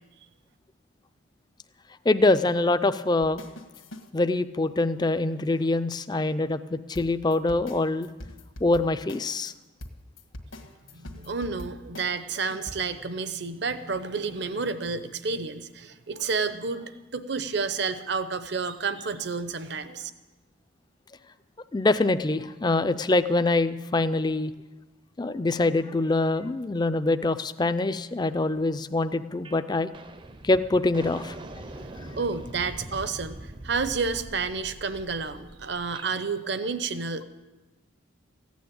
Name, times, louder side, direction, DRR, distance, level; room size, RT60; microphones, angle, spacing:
voice 1, 2.1-3.4 4.1-8.1 8.6-9.5 21.7-24.5 25.2-29.9 30.4-31.3, left 2 dB, 20° left, 11 dB, 0.4 m, -24 dB
sound 1, 3.2-4.1 7.0-9.5 9.8-12.7, left 1 dB, 80° left, 1.7 m, -42 dB
voice 2, 10.9-20.1 32.0-37.2, right 4 dB, 55° right, 12 dB, 0.8 m, -30 dB
sound 2, 29.4-29.6 29.9-36.1, right 1 dB, 25° right, 0.6 m, -43 dB
15.5 x 9.4 x 8.6 m, 1.2 s
head